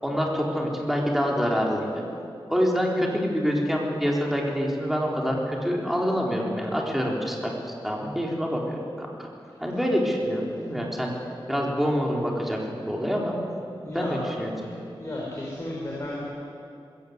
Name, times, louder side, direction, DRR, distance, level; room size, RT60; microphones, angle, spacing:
voice 1, 0.0-2.0 2.5-7.5 7.8-9.3 9.6-11.2 11.5-13.4 13.9-14.5, equal, ahead, -1 dB, 3.9 m, -26 dB
voice 2, 13.8-14.2 14.6-16.2, left 1 dB, 30° left, -5 dB, 5.0 m, -34 dB
21.0 x 16.5 x 8.1 m, 2.5 s
wide cardioid pair, 95°, 9 cm